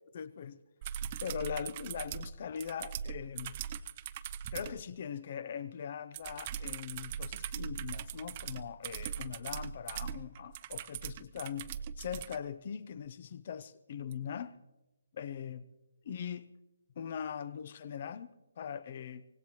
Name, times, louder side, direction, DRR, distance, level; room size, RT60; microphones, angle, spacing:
voice 1, 0.1-0.6 1.2-3.6 4.5-14.5 15.1-15.6 16.0-16.5 17.0-19.3, left 8 dB, 45° left, 0.8 m, -41 dB
sound 1, 0.8-4.8 6.1-12.4 14.1-14.2, right 9 dB, 35° right, 0.6 m, -41 dB
24.5 x 18.0 x 3.1 m
figure-of-eight pair, 150°, 0 cm